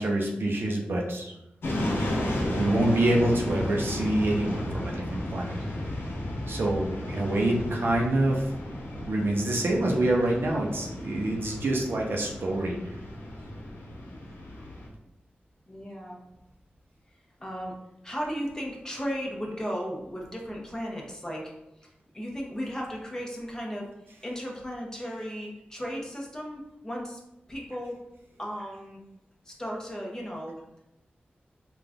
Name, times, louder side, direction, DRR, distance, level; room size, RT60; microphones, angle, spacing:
voice 1, 0.0-1.3 2.5-5.6 6.5-8.5 8.9-12.8, right 1 dB, 75° right, 0 dB, 0.7 m, -26 dB
sound 1, 1.6-14.9, left 1 dB, 85° left, 0.8 m, -34 dB
voice 2, 15.7-16.2 17.4-17.8 18.0-21.5 21.8-23.9 24.2-27.2 27.5-28.0 28.4-29.0 29.4-30.6, equal, 15° left, -2 dB, 1.0 m, -35 dB
3.9 x 2.4 x 3.5 m, 0.88 s
cardioid pair, 60°, 4 cm